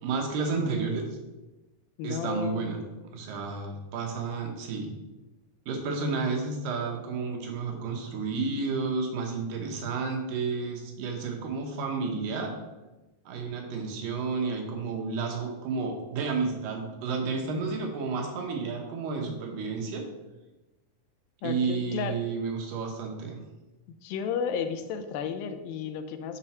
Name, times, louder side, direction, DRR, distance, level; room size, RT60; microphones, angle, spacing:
voice 1, 0.0-1.0 2.0-2.8 3.1-4.9 5.7-12.5 13.3-20.0 21.4-23.4, right 4 dB, 70° right, 1 dB, 2.6 m, -31 dB
voice 2, 2.0-2.7 21.4-22.2 24.0-26.4, left 6 dB, 85° left, 8 dB, 2.4 m, -33 dB
6.9 x 5.1 x 4.2 m, 1.1 s
omnidirectional pair, 4.1 m